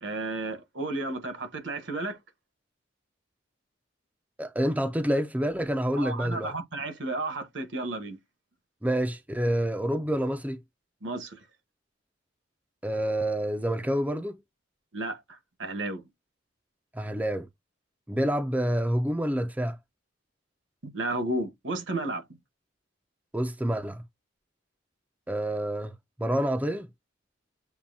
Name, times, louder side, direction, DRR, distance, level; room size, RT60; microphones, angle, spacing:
voice 1, 0.0-2.2 6.0-8.2 11.0-11.4 14.9-16.0 20.8-22.2, right 2 dB, 65° right, 1.1 m, -33 dB
voice 2, 4.4-6.5 8.8-10.6 12.8-14.4 16.9-17.5 18.1-19.8 23.3-24.0 25.3-25.9 26.2-26.9, equal, 10° right, 0.5 m, -28 dB
7.0 x 2.7 x 2.6 m
head